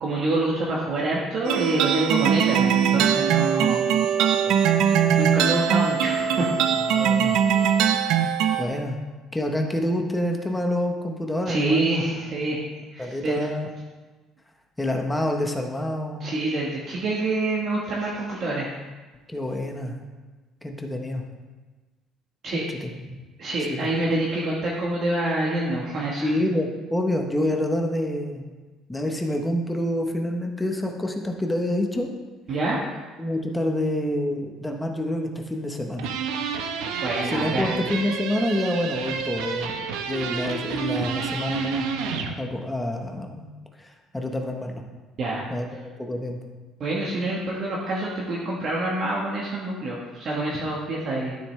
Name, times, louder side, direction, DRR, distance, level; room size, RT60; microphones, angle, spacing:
voice 1, 0.0-3.9 5.2-6.5 11.5-12.7 12.9-13.5 16.2-18.7 22.4-22.6 23.4-26.3 32.5-32.8 37.0-37.7 45.2-45.5 46.8-51.4, right 2 dB, 35° right, -5 dB, 1.2 m, -26 dB
sound 1, 1.4-8.6, right 8 dB, 65° right, 0.6 m, -21 dB
voice 2, 4.2-4.5 6.9-7.4 8.6-9.0 9.3-12.0 13.0-13.7 14.8-16.3 19.3-19.9 20.6-21.2 22.5-23.2 23.7-23.8 26.2-28.4 28.9-32.1 33.2-36.1 37.2-41.9 42.4-43.5 43.8-44.8 45.5-45.7 46.0-46.4, left 1 dB, 5° left, 2 dB, 0.9 m, -27 dB
sound 2, 36.0-42.4, right 6 dB, 85° right, 0.9 m, -30 dB
12.5 x 7.0 x 3.2 m, 1.3 s
cardioid pair, 175°, 0 cm